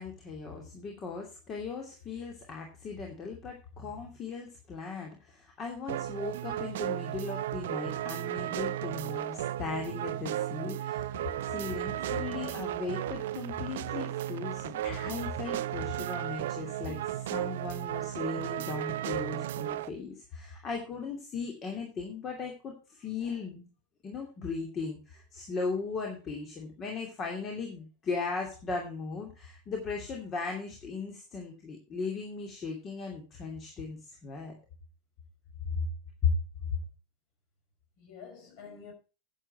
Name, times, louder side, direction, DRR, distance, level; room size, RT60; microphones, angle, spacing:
voice 1, 0.0-11.2 11.5-23.7 24.0-34.5 36.2-36.3, left 4 dB, 25° left, 2.6 m, -37 dB
sound 1, 5.9-19.9, right 13 dB, 55° right, 0.5 m, -34 dB
voice 2, 38.0-38.9, left 6 dB, 45° left, 5.4 m, -46 dB
11.0 x 8.4 x 4.6 m
figure-of-eight pair, 90°, 0 cm